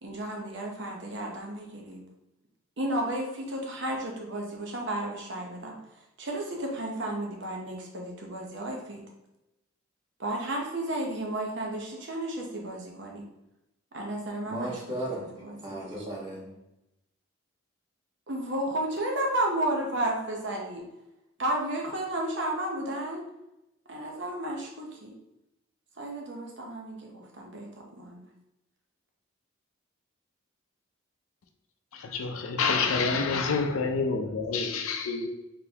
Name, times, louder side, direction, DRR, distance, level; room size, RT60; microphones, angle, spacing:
voice 1, 0.0-2.0 2.8-5.8 6.2-9.0 10.2-13.3 13.9-14.8 15.4-16.1 18.3-20.9 21.4-23.2 23.9-25.1 26.0-28.3, right 1 dB, 55° right, 0.9 m, -33 dB
voice 2, 14.5-16.6, right 1 dB, 20° right, 1.2 m, -36 dB
voice 3, 32.0-35.3, left 4 dB, 85° left, 0.5 m, -27 dB
3.8 x 3.7 x 2.9 m
head